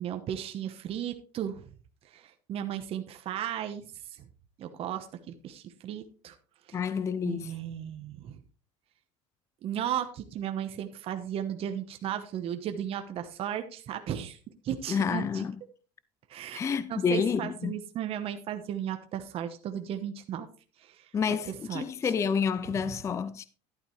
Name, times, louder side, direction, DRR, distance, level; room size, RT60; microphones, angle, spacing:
voice 1, 0.0-1.6 2.1-3.9 4.1-4.3 4.6-6.3 7.2-8.4 9.6-14.4 14.6-15.5 16.3-16.6 16.9-20.5 20.8-21.1 21.5-22.1 22.8-23.0, right 10 dB, 40° right, 1.0 m, -35 dB
voice 2, 6.7-7.5 14.9-15.6 16.5-17.8 21.1-23.5, left 6 dB, 20° left, 0.4 m, -29 dB
11.5 x 8.8 x 3.2 m
cardioid pair, 135°, 15 cm